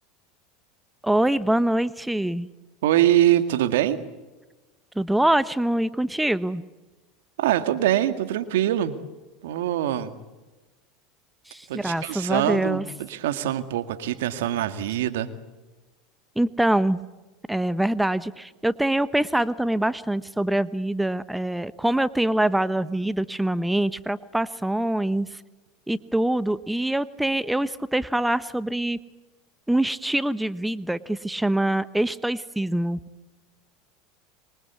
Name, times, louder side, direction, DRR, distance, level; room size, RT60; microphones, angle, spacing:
voice 1, 1.0-2.5 5.0-6.6 11.5-12.8 16.4-17.0 17.5-25.3 25.9-29.0 29.7-33.0, right 1 dB, 5° right, 16 dB, 1.0 m, -24 dB
voice 2, 2.8-4.0 7.4-9.0 9.4-10.2 11.7-15.3, right 12 dB, 75° right, 10 dB, 2.0 m, -23 dB
26.0 x 23.5 x 8.3 m, 1.2 s
hypercardioid pair, 90°, 0 cm